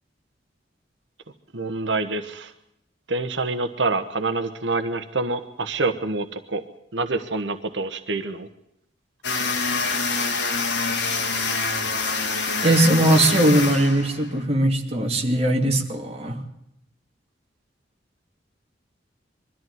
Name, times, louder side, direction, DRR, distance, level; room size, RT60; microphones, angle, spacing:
voice 1, 1.5-2.5 3.1-6.6 6.9-8.5, right 3 dB, 85° right, 8 dB, 1.3 m, -26 dB
sound 1, 9.2-14.4, left 4 dB, 70° left, 3.5 m, -26 dB
voice 2, 12.6-16.4, right 1 dB, 35° right, 2 dB, 2.8 m, -20 dB
23.0 x 14.0 x 9.4 m, 0.80 s
head